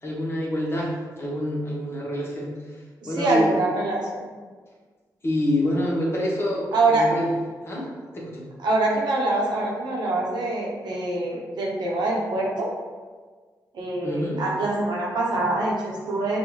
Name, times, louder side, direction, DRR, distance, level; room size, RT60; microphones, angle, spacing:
voice 1, 0.0-2.5 3.0-3.5 5.2-6.6 6.9-7.3 7.6-7.9 8.1-8.4 14.0-14.4, left 1 dB, 35° left, -4 dB, 1.4 m, -26 dB
voice 2, 3.0-4.3 6.7-7.1 8.6-12.7 13.7-16.4, right 2 dB, 90° right, -2 dB, 0.9 m, -24 dB
5.3 x 2.6 x 3.2 m, 1.5 s
cardioid pair, 65°, 7 cm